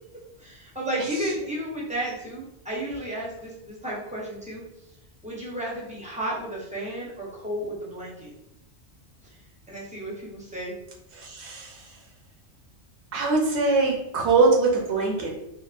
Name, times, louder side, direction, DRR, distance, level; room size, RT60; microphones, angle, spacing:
voice 1, 0.4-4.6 5.2-8.3 9.2-9.3 9.7-10.8, right 1 dB, 10° right, -5 dB, 0.5 m, -33 dB
voice 2, 11.1-12.0 13.1-15.3, right 3 dB, 75° right, -1 dB, 0.9 m, -22 dB
2.9 x 2.0 x 2.4 m, 0.84 s
omnidirectional pair, 1.2 m